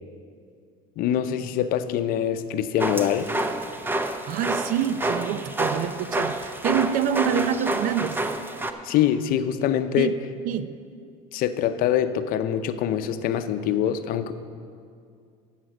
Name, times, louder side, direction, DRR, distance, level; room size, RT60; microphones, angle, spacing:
voice 1, 1.0-3.3 8.8-10.1 11.3-14.3, left 10 dB, 60° left, 10 dB, 0.7 m, -24 dB
sound 1, 2.8-8.7, right 1 dB, 10° right, 0.7 m, -28 dB
voice 2, 4.2-8.2 10.0-10.2 10.5-10.8, right 9 dB, 55° right, 14 dB, 0.5 m, -26 dB
12.5 x 7.5 x 6.2 m, 2.3 s
supercardioid pair, 105°, 17 cm